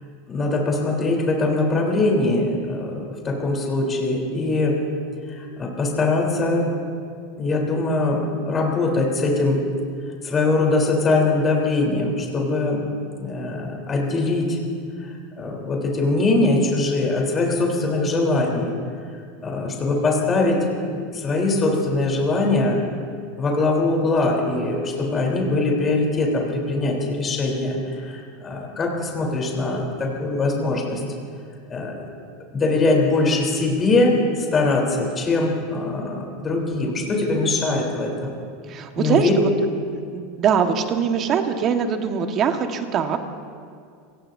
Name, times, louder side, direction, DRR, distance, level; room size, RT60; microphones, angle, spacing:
voice 1, 0.3-4.8 5.3-6.7 7.4-9.6 10.2-12.8 13.2-14.6 15.0-18.7 19.4-22.8 23.4-31.0 31.7-32.0 32.5-38.3 39.0-39.3, left 2 dB, 30° left, -1 dB, 3.7 m, -22 dB
voice 2, 38.7-39.5 40.1-43.2, right 7 dB, 40° right, 6 dB, 1.6 m, -22 dB
27.5 x 17.0 x 2.8 m, 2.2 s
hypercardioid pair, 95°, 0 cm